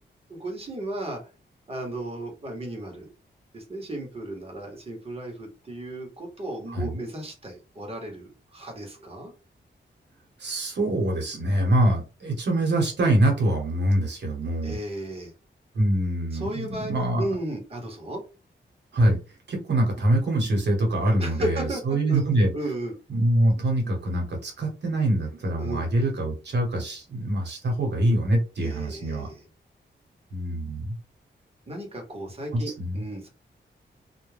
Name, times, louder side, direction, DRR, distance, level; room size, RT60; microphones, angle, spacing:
voice 1, 0.3-1.2 1.7-3.1 3.5-9.3 14.6-15.3 16.3-18.2 21.2-22.2 22.5-22.9 25.6-25.9 28.6-29.4 31.7-33.3, right 1 dB, 30° right, 1 dB, 0.9 m, -34 dB
voice 2, 10.4-14.8 15.7-17.2 18.9-19.2 19.5-22.5 23.1-29.3 30.3-30.9 32.5-33.0, right 1 dB, 65° right, 0 dB, 1.0 m, -24 dB
2.2 x 2.1 x 3.2 m, 0.32 s
wide cardioid pair, 165°, 19 cm